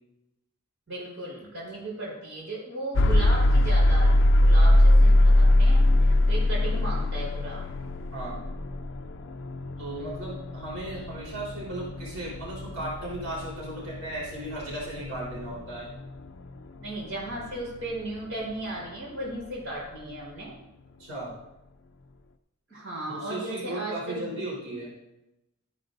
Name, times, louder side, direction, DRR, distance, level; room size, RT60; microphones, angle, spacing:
voice 1, 0.9-7.6 10.0-10.3 16.8-20.5 22.7-24.4, right 2 dB, 60° right, -5 dB, 4.3 m, -36 dB
sound 1, 2.9-18.9, left 1 dB, 60° left, 0.5 m, -23 dB
voice 2, 9.8-15.9 21.0-21.3 23.1-24.9, right 1 dB, 90° right, -5 dB, 3.9 m, -36 dB
13.5 x 10.5 x 2.6 m, 0.91 s
head